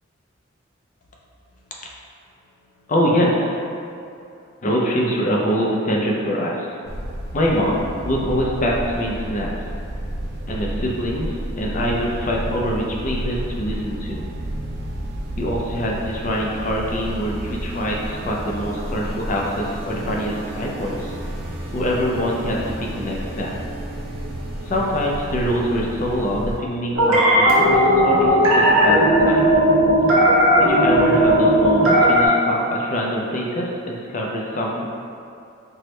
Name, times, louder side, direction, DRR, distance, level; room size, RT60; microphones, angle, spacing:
voice 1, 2.9-3.6 4.6-6.7 7.3-9.5 10.5-14.2 15.4-21.1 21.7-23.5 24.6-29.5 30.6-34.9, equal, 40° left, -2 dB, 0.4 m, -24 dB
sound 1, 6.8-26.6, right 1 dB, 50° right, 0.4 m, -31 dB
sound 2, 26.9-32.3, equal, 85° right, 0.8 m, -15 dB
4.4 x 2.1 x 3.1 m, 2.6 s
head